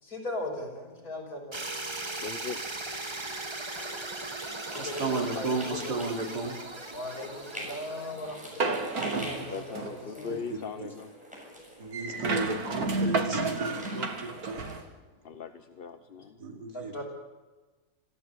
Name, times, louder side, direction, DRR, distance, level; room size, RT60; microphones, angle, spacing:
voice 1, 0.0-1.7 4.7-6.0 6.9-10.4 16.7-17.0, left 1 dB, 60° left, 0 dB, 6.4 m, -38 dB
sound 1, 1.5-9.5, right 2 dB, 20° right, 1.0 m, -39 dB
voice 2, 2.2-2.6 9.5-11.1 15.2-16.4, left 6 dB, 45° left, 8 dB, 0.9 m, -39 dB
sound 2, 3.7-14.8, equal, 5° right, 6.9 m, -46 dB
voice 3, 4.7-6.7 10.3-10.9 11.8-14.7 16.4-17.0, right 3 dB, 80° right, 2 dB, 3.5 m, -34 dB
sound 3, 8.6-10.1 11.9-14.8, right 3 dB, 65° right, 2.4 m, -31 dB
26.5 x 15.0 x 8.3 m, 1.2 s
omnidirectional pair, 1.7 m